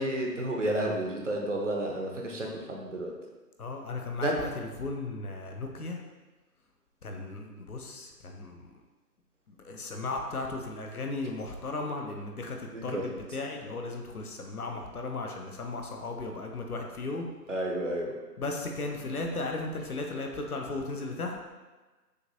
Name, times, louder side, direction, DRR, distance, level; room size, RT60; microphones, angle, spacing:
voice 1, 0.0-3.1 4.2-4.3 12.7-13.0 17.5-18.2, right 1 dB, 50° right, 0 dB, 0.7 m, -31 dB
voice 2, 3.6-6.0 7.0-8.7 9.5-17.3 18.4-21.4, left 3 dB, 60° left, 2 dB, 0.7 m, -36 dB
6.5 x 2.6 x 2.8 m, 1.2 s
figure-of-eight pair, 155°, 50 cm